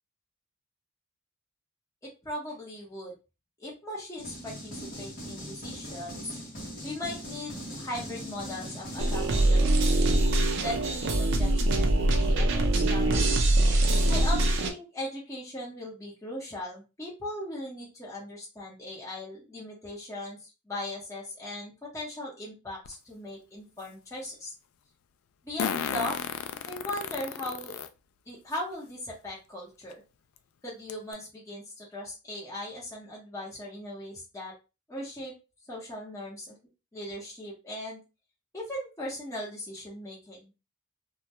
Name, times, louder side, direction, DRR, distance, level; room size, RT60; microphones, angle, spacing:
voice 1, 2.2-3.1 3.6-6.4 6.8-9.9 10.6-13.4 14.1-24.5 25.4-26.2 26.7-27.7 28.3-30.0 30.6-34.5 34.9-35.3 35.7-36.6 36.9-38.0 38.5-40.5, left 1 dB, 15° left, -5 dB, 0.8 m, -38 dB
sound 1, 4.2-9.5, equal, 45° left, 0.8 m, -40 dB
sound 2, 9.0-14.7, right 1 dB, 60° right, 0.5 m, -23 dB
Fart, 22.9-23.0 25.6-27.9 28.5-28.6 29.9-30.0 30.4-30.5 30.9-31.1, left 8 dB, 85° left, 0.3 m, -33 dB
2.2 x 2.2 x 2.8 m, 0.29 s
head